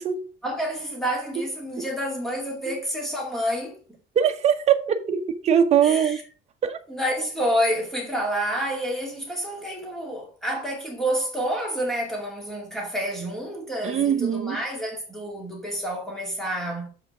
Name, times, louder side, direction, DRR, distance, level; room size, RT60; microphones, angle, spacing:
voice 1, 0.4-3.8 5.8-6.2 6.9-16.9, equal, ahead, 2.4 m, -28 dB
voice 2, 4.1-6.2 6.6-6.8 13.8-14.6, right 8 dB, 35° right, 1.0 m, -22 dB
7.1 x 5.5 x 4.9 m
cardioid pair, 180°, 20 cm